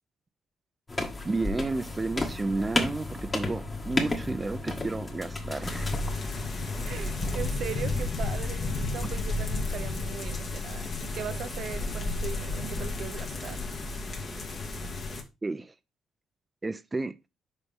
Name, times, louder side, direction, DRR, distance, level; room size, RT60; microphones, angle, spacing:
sound 1, 0.9-7.4, left 2 dB, 30° left, 1.9 m, -33 dB
voice 1, 1.2-6.0 15.4-15.7 16.6-17.1, right 3 dB, 20° right, 0.5 m, -32 dB
sound 2, 5.6-15.2, left 3 dB, 50° left, 1.8 m, -32 dB
voice 2, 6.9-13.7, right 9 dB, 70° right, 0.7 m, -39 dB
6.9 x 5.3 x 3.6 m
cardioid pair, 90°, 0 cm